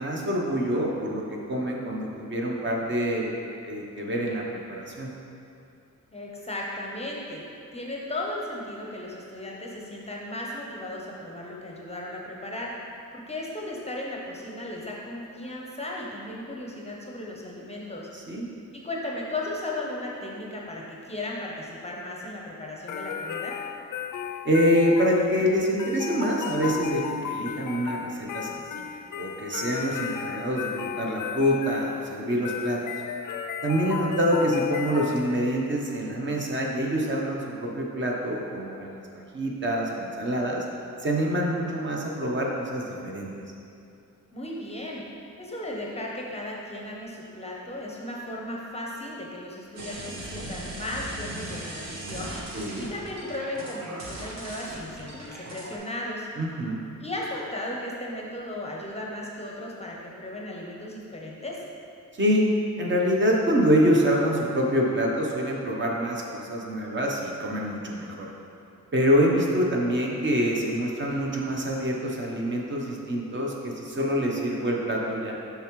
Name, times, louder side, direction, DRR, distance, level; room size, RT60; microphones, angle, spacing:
voice 1, 0.0-3.3 3.6-4.4 4.7-5.1 18.3-18.5 24.4-28.8 29.2-32.8 33.6-39.0 39.3-40.6 41.0-43.3 52.5-52.9 56.4-56.8 62.2-62.5 62.8-68.3 68.9-75.3, equal, 35° right, -2 dB, 0.8 m, -26 dB
voice 2, 6.1-7.4 7.7-12.7 13.1-18.1 18.7-23.6 44.3-45.0 45.4-56.3 57.0-61.6, left 1 dB, 20° left, -2 dB, 0.6 m, -36 dB
sound 1, 22.9-35.7, left 8 dB, 75° left, 0.5 m, -35 dB
sound 2, 49.8-55.8, right 1 dB, 55° right, 1.0 m, -38 dB
6.9 x 5.7 x 3.1 m, 2.6 s
wide cardioid pair, 155°, 31 cm